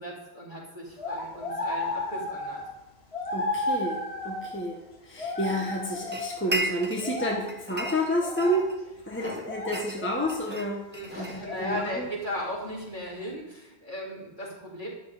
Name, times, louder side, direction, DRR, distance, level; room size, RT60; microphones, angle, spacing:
voice 1, 0.0-2.6 10.9-14.9, equal, 45° left, -4 dB, 3.7 m, -37 dB
sound 1, 1.0-2.7 3.1-4.6 5.2-6.5 7.0-7.5 7.8-8.7 9.4-10.4 11.1-11.9, left 2 dB, 70° left, 2.3 m, -33 dB
voice 2, 3.3-8.7 9.1-10.8 11.2-12.1, equal, 10° left, -1 dB, 1.4 m, -30 dB
sound 2, 6.1-7.2 7.5-8.8 9.2-11.9, right 1 dB, 10° right, 1.1 m, -35 dB
12.5 x 10.5 x 5.1 m, 0.97 s
omnidirectional pair, 1.1 m